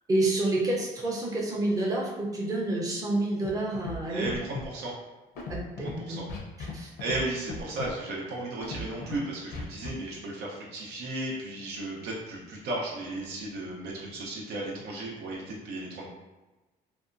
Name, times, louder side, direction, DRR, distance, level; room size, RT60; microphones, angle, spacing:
voice 1, 0.1-4.3 5.5-6.2 6.7-6.9, right 2 dB, 20° right, -4 dB, 0.6 m, -28 dB
Scratching (performance technique), 3.4-3.5 3.7-4.0 4.2-4.7 5.3-5.9 6.3-6.7 7.0-7.2 7.5-7.9 8.6-9.2 9.5-9.9, left 3 dB, 70° left, 0.7 m, -36 dB
voice 2, 4.1-4.9 5.8-6.3 7.0-16.1, right 2 dB, 80° right, -3 dB, 0.8 m, -35 dB
2.7 x 2.3 x 2.5 m, 1.1 s
cardioid pair, 110°, 17 cm